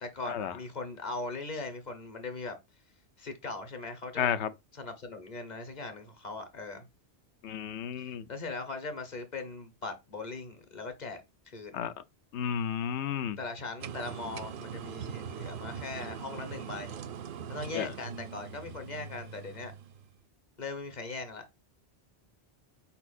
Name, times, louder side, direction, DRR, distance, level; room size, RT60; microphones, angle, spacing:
voice 1, 0.0-2.6 3.2-4.3 4.7-6.9 8.0-11.2 11.5-11.9 13.4-17.0 17.5-19.7 20.6-21.5, left 3 dB, 45° left, 1.0 m, -40 dB
voice 2, 4.2-4.5 7.4-8.2 11.7-11.9 12.3-13.4 17.7-17.9, left 8 dB, 85° left, 0.9 m, -32 dB
sound 1, 13.8-20.1, right 7 dB, 60° right, 0.7 m, -42 dB
4.5 x 4.3 x 2.4 m
omnidirectional pair, 1.1 m